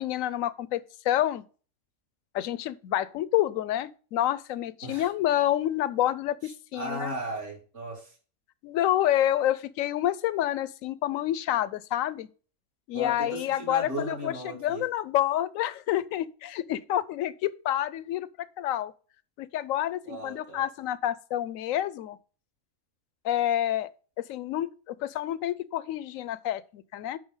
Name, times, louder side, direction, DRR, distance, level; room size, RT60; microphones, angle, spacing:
voice 1, 0.0-1.4 2.3-7.1 8.6-12.3 12.9-18.3 18.6-18.9 19.4-22.2 23.2-23.9 24.2-27.2, left 12 dB, 75° left, 0.9 m, -28 dB
voice 2, 6.7-8.2 12.9-14.9 20.1-20.6, right 1 dB, 50° right, 2.5 m, -36 dB
9.5 x 5.6 x 3.7 m
omnidirectional pair, 1.5 m